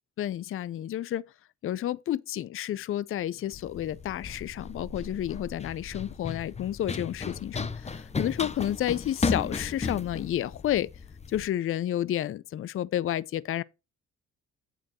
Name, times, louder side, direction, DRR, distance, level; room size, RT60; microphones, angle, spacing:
voice 1, 0.2-1.2 1.6-10.9 11.3-13.6, left 12 dB, 45° left, 0.5 m, -30 dB
Run, 3.5-11.5, left 4 dB, 20° left, 0.7 m, -35 dB
9.0 x 3.9 x 6.1 m
cardioid pair, 90°, 30 cm